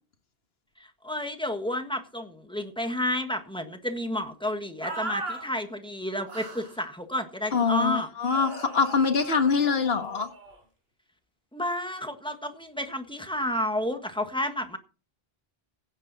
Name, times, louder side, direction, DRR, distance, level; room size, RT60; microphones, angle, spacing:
voice 1, 0.8-8.1 11.5-14.8, left 1 dB, 5° left, 6 dB, 1.5 m, -31 dB
sound 1, 4.8-5.4 6.3-6.8 8.3-10.6, right 2 dB, 80° right, 4.9 m, -37 dB
voice 2, 7.5-10.3, left 5 dB, 75° left, 8 dB, 1.7 m, -24 dB
16.5 x 9.1 x 4.1 m, 0.35 s
omnidirectional pair, 1.0 m